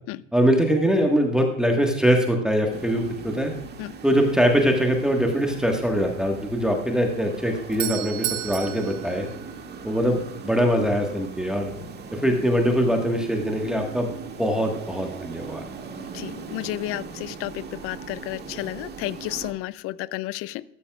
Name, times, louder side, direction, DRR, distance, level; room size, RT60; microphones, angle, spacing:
voice 1, 0.3-3.5 4.0-9.3 9.8-11.7 12.1-14.1 14.4-15.6, equal, ahead, 2 dB, 1.5 m, -22 dB
sound 1, 2.7-19.5, right 5 dB, 25° right, 1.7 m, -40 dB
Doorbell, 7.4-10.2, right 15 dB, 70° right, 0.9 m, -33 dB
voice 2, 16.1-20.6, left 17 dB, 35° left, 20 dB, 0.5 m, -32 dB
14.0 x 13.0 x 2.4 m, 0.75 s
hypercardioid pair, 105°, 39 cm